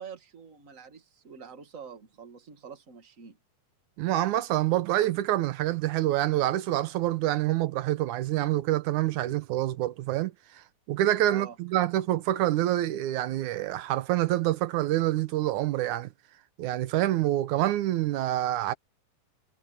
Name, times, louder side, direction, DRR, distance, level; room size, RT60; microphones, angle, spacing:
voice 1, 0.0-3.4 11.3-11.6, right 6 dB, 30° right, 1.9 m, -46 dB
voice 2, 4.0-16.1 16.6-18.7, right 14 dB, 80° right, 2.3 m, -27 dB
omnidirectional pair, 3.5 m